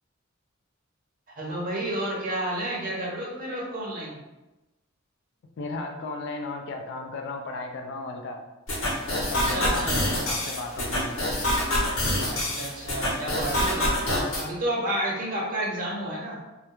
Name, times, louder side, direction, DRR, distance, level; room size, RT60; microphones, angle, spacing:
voice 1, 1.3-4.2 9.2-10.3 12.3-16.4, right 1 dB, 45° right, -4 dB, 0.7 m, -31 dB
voice 2, 5.6-8.4 9.1-11.1, left 3 dB, 60° left, 3 dB, 0.3 m, -35 dB
sound 1, 8.7-14.4, left 1 dB, 80° left, 0.8 m, -26 dB
2.3 x 2.1 x 2.9 m, 1.0 s
head